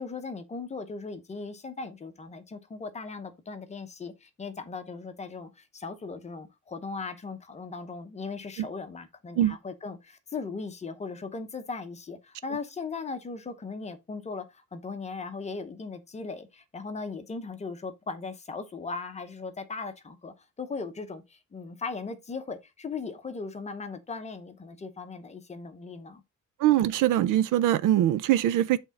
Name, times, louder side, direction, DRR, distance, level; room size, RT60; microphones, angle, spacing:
voice 1, 0.0-26.2, left 4 dB, 20° left, 0.8 m, -38 dB
voice 2, 26.6-28.8, right 12 dB, 70° right, 0.6 m, -22 dB
7.9 x 3.7 x 4.1 m
cardioid pair, 165°, 33 cm